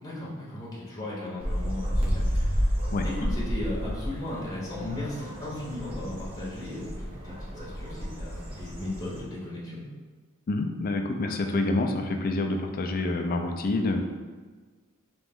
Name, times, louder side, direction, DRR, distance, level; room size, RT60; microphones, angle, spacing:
voice 1, 0.0-2.7 3.0-9.8, left 1 dB, 15° left, -7 dB, 0.9 m, -36 dB
sound 1, 1.4-9.2, equal, 25° right, 0.8 m, -31 dB
voice 2, 10.5-14.0, left 2 dB, 40° left, 4 dB, 0.4 m, -27 dB
3.4 x 3.1 x 3.5 m, 1.4 s
head